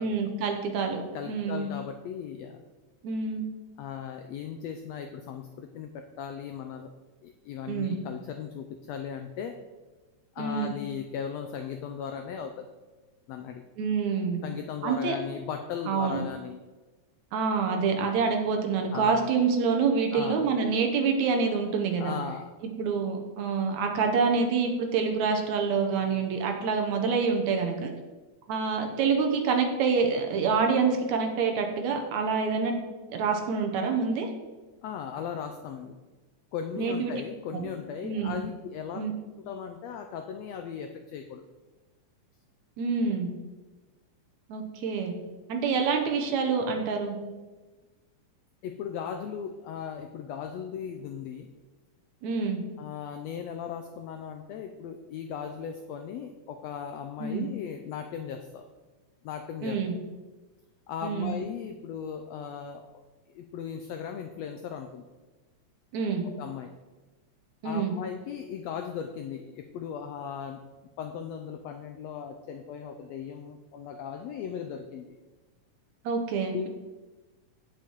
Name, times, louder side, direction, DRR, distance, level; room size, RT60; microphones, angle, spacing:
voice 1, 0.0-1.0 1.3-1.7 3.0-3.4 7.7-8.0 10.4-10.7 13.8-14.4 14.8-15.2 15.9-16.2 17.3-22.1 22.6-27.9 28.5-32.8 33.1-34.3 36.8-37.1 37.5-37.7 38.0-38.4 39.0-39.1 42.8-43.3 44.5-45.1 45.5-47.2 52.2-52.6 57.2-57.5 59.6-60.0 61.0-61.4 65.9-66.3 67.6-67.9 76.1-76.7, right 5 dB, 70° right, 3 dB, 2.2 m, -27 dB
voice 2, 1.1-2.6 3.8-6.9 7.2-9.6 10.3-12.7 13.3-13.6 14.4-16.6 18.9-19.2 20.1-20.5 22.0-22.5 34.8-36.0 36.5-39.0 39.4-41.4 48.6-51.5 52.8-58.6 59.2-59.8 60.9-63.0 63.3-65.0 66.2-66.7 67.6-70.6 71.0-75.2 76.5-76.7, left 7 dB, 85° left, 6 dB, 1.5 m, -37 dB
8.7 x 7.2 x 4.6 m, 1.2 s
omnidirectional pair, 3.6 m